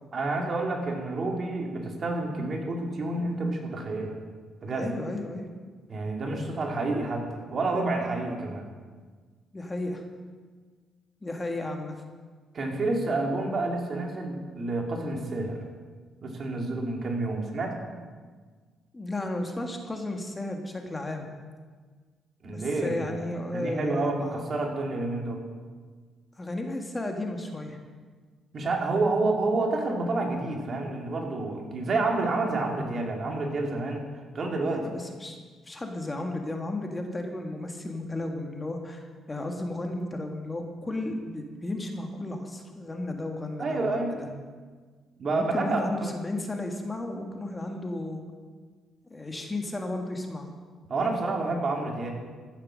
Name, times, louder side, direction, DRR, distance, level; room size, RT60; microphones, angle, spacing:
voice 1, 0.1-4.2 4.6-4.9 5.9-8.7 12.5-15.6 16.2-17.8 22.4-25.4 28.5-34.0 34.3-34.9 43.6-44.2 45.2-46.1 50.9-52.1, right 2 dB, 45° right, 1 dB, 2.5 m, -29 dB
voice 2, 4.7-5.5 9.5-10.0 11.2-11.9 18.9-21.3 22.4-24.5 26.4-27.8 34.7-35.4 35.6-44.2 45.3-48.2 49.1-50.5, left 2 dB, 20° left, 3 dB, 1.6 m, -34 dB
15.0 x 7.4 x 6.4 m, 1.5 s
cardioid pair, 90°, 0 cm